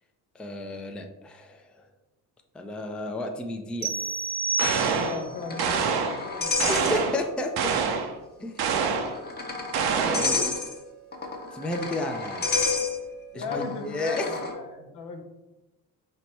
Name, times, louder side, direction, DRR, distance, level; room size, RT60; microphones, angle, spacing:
voice 1, 0.3-1.6 2.5-3.9 6.6-7.7 8.4-8.9 10.0-10.5 11.5-12.7 13.3-14.3, left 2 dB, 5° left, 3 dB, 0.4 m, -32 dB
sound 1, 3.8-5.3, right 3 dB, 20° right, 0.8 m, -29 dB
sound 2, 4.6-5.2 5.6-6.2 6.6-7.2 7.6-8.1 8.6-9.2 9.7-10.4, right 6 dB, 65° right, 0.7 m, -26 dB
voice 2, 4.7-7.1 13.3-15.2, left 4 dB, 70° left, 4 dB, 0.8 m, -37 dB
sound 3, 4.7-7.4 7.7-7.8 8.7-14.5, left 3 dB, 25° left, 0.9 m, -31 dB
4.4 x 2.2 x 4.1 m, 1.0 s
supercardioid pair, 75°, 41 cm